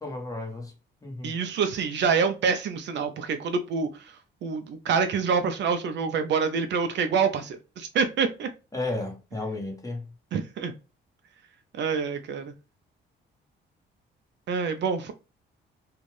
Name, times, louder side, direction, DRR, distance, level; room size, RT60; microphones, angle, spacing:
voice 1, 0.0-0.7 1.0-1.4 8.7-10.1, left 2 dB, 15° left, 1.1 m, -33 dB
voice 2, 1.2-3.9 4.4-8.5 10.3-10.7 11.7-12.5 14.5-15.1, right 5 dB, 65° right, 0.5 m, -26 dB
2.6 x 2.4 x 3.1 m
cardioid pair, 90°, 20 cm